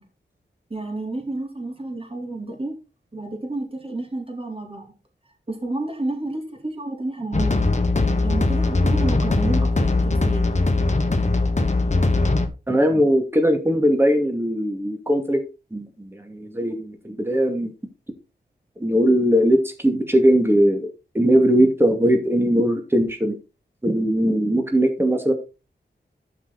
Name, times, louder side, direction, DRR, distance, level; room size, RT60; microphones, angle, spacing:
voice 1, 0.7-2.8 3.1-4.9 5.5-7.6 8.2-10.5, right 2 dB, 30° right, 2 dB, 4.0 m, -30 dB
sound 1, 7.3-12.5, left 2 dB, 40° left, 1.5 m, -20 dB
voice 2, 12.7-15.4 15.7-17.7 18.8-20.9 21.1-23.4 23.8-25.3, equal, 10° right, 4 dB, 2.4 m, -19 dB
12.5 x 6.0 x 4.2 m, 0.29 s
wide cardioid pair, 90°, 19 cm